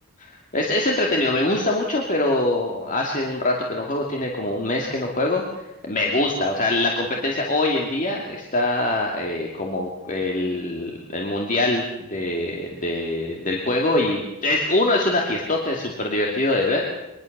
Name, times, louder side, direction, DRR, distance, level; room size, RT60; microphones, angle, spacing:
voice 1, 0.3-5.4 5.8-16.9, left 2 dB, 35° left, 0 dB, 2.5 m, -23 dB
23.5 x 21.0 x 6.7 m, 0.98 s
head